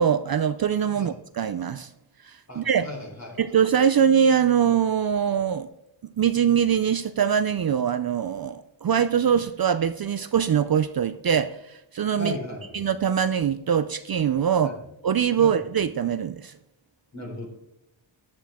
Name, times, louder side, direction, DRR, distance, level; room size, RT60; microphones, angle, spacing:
voice 1, 0.0-1.9 2.2-2.9 3.4-5.7 6.2-12.3 12.7-14.7 15.0-16.5, right 8 dB, 50° right, 0.5 m, -23 dB
voice 2, 2.5-3.4 12.2-12.8 14.6-14.8 15.4-15.6 17.1-17.5, left 1 dB, 35° left, 4.2 m, -36 dB
11.5 x 10.5 x 3.6 m
wide cardioid pair, 85°, 49 cm